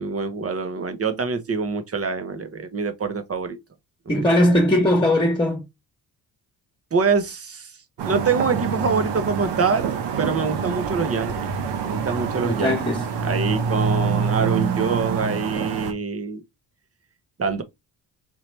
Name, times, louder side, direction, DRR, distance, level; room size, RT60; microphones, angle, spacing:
voice 1, 0.0-3.6 4.1-4.2 6.9-11.5 11.8-12.8 13.2-16.4 17.4-17.6, right 5 dB, 35° right, 1.1 m, -25 dB
voice 2, 4.1-5.6 12.4-13.0, left 1 dB, 10° left, 1.5 m, -19 dB
sound 1, 8.0-15.9, right 6 dB, 85° right, 1.2 m, -26 dB
4.5 x 2.8 x 3.3 m
cardioid pair, 80°, 41 cm